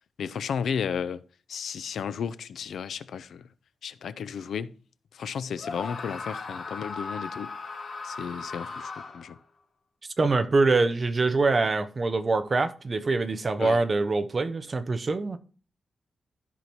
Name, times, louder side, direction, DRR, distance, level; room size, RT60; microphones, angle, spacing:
voice 1, 0.2-1.2 1.5-3.5 3.8-4.7 5.1-7.5 8.0-9.4 13.6-13.8, left 7 dB, 85° left, 0.5 m, -33 dB
Screaming, 5.6-9.4, left 4 dB, 60° left, 3.6 m, -37 dB
voice 2, 10.2-15.4, right 3 dB, 35° right, 0.7 m, -24 dB
13.5 x 5.8 x 3.0 m
wide cardioid pair, 140°, 0 cm